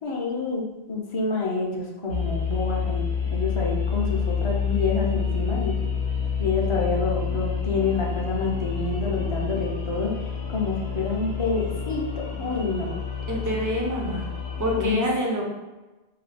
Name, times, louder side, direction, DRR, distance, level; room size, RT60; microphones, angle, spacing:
voice 1, 0.0-3.0 3.3-5.7 6.4-10.1 10.5-12.0 12.4-13.0 14.7-15.0, left 3 dB, 40° left, -2 dB, 0.4 m, -28 dB
sound 1, 2.1-14.9, left 6 dB, 80° left, 0.8 m, -28 dB
voice 2, 13.3-14.2 14.6-15.4, equal, 30° right, -2 dB, 0.4 m, -26 dB
2.7 x 2.2 x 3.3 m, 1.1 s
omnidirectional pair, 1.1 m